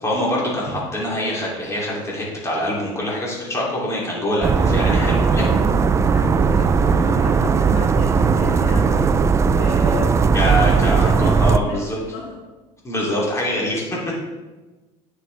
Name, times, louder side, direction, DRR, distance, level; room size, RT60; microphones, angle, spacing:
voice 1, 0.0-5.4 10.3-12.0 12.8-14.1, equal, 20° left, -4 dB, 2.8 m, -24 dB
sound 1, 4.4-11.6, right 5 dB, 20° right, 0.4 m, -17 dB
voice 2, 4.7-12.4, left 3 dB, 65° left, -1 dB, 1.4 m, -33 dB
9.3 x 6.5 x 3.3 m, 1.2 s
supercardioid pair, 115°, 14 cm